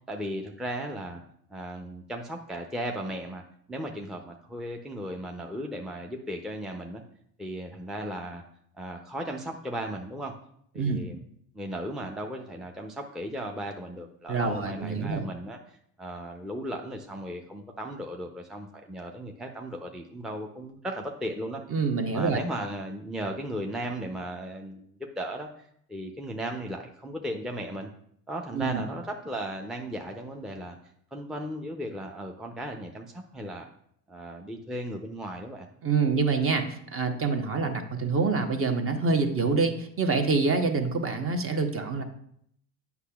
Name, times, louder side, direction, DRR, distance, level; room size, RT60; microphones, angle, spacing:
voice 1, 0.1-1.2 1.5-3.4 3.7-7.0 7.4-8.4 8.7-10.3 10.7-11.2 11.5-21.6 22.1-24.9 25.2-27.9 28.3-30.8 31.1-33.7 34.1-35.7, right 1 dB, ahead, 2 dB, 0.5 m, -36 dB
voice 2, 14.3-15.2 21.7-22.4 28.5-28.8 35.8-42.0, right 4 dB, 35° right, 6 dB, 0.9 m, -26 dB
8.2 x 5.8 x 2.3 m, 0.69 s
supercardioid pair, 80°, 40 cm